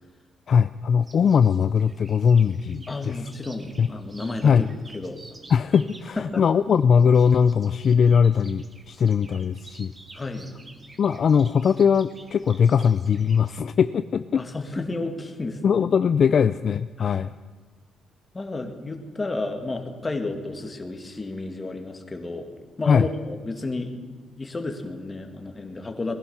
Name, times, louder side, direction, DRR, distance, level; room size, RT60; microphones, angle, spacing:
voice 1, 0.5-3.1 3.8-3.9 4.4-4.7 5.5-9.9 11.0-14.4 15.6-17.3 22.9-23.1, left 7 dB, 55° left, 12 dB, 0.4 m, -20 dB
sound 1, 1.0-13.6, right 2 dB, 25° right, 1.5 m, -51 dB
voice 2, 2.9-4.7 4.9-5.2 6.2-6.4 10.1-10.5 14.4-15.6 17.0-17.2 18.3-22.5 22.8-23.9 24.4-26.2, left 2 dB, 25° left, 5 dB, 2.1 m, -31 dB
20.0 x 11.5 x 5.7 m, 1.4 s
cardioid pair, 90°, 0 cm